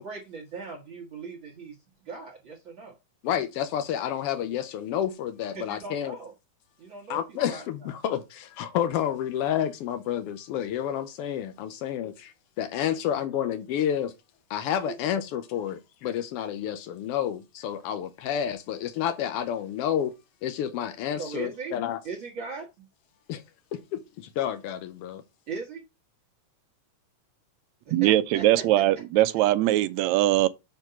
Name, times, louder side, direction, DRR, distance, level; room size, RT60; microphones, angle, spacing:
voice 1, 0.0-3.0 5.5-6.3 6.8-8.0 14.8-15.0 21.2-21.8 22.0-22.9 25.5-25.8 27.9-28.8, right 4 dB, 50° right, 1.7 m, -39 dB
voice 2, 3.2-6.2 7.1-14.1 14.5-20.1 20.4-22.0 23.3-23.4 23.7-25.2, left 10 dB, 80° left, 1.3 m, -30 dB
voice 3, 27.9-30.5, right 15 dB, 80° right, 1.8 m, -21 dB
6.7 x 4.5 x 5.6 m
omnidirectional pair, 3.4 m